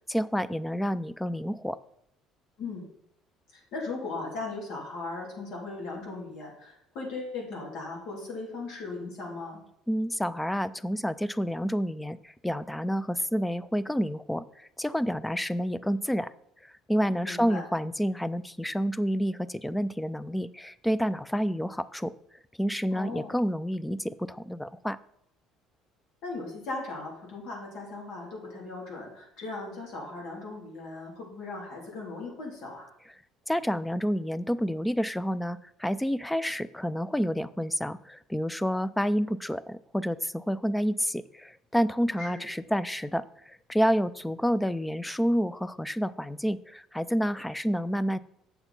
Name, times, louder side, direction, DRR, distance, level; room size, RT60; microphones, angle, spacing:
voice 1, 0.1-1.8 9.9-12.2 12.4-14.5 14.8-16.3 16.9-22.1 22.6-25.0 33.5-43.2 43.7-48.2, equal, 5° left, 17 dB, 0.3 m, -29 dB
voice 2, 3.5-9.6 17.2-17.6 22.9-23.4 26.2-32.9 42.2-42.4, left 3 dB, 65° left, -2 dB, 3.2 m, -38 dB
7.9 x 6.8 x 4.2 m, 0.76 s
cardioid pair, 140°, 0 cm